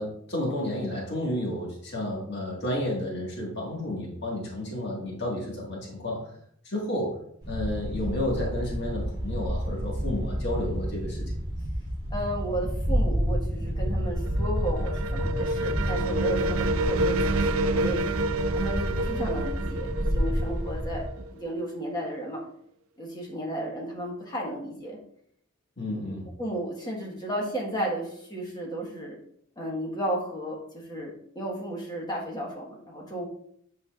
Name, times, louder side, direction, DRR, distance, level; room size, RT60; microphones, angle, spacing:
voice 1, 0.0-6.3 6.6-7.2 7.5-11.3 25.8-26.3, left 1 dB, 50° left, -3 dB, 1.9 m, -31 dB
sound 1, 7.4-21.1, equal, 20° right, 2.1 m, -29 dB
voice 2, 12.1-18.0 18.5-21.0 21.3-22.4 23.0-25.0 26.4-29.2 29.6-33.3, right 1 dB, 20° left, -2 dB, 1.5 m, -33 dB
sound 2, 13.7-21.4, right 2 dB, 75° right, 0.5 m, -29 dB
8.3 x 5.5 x 2.5 m, 0.67 s
head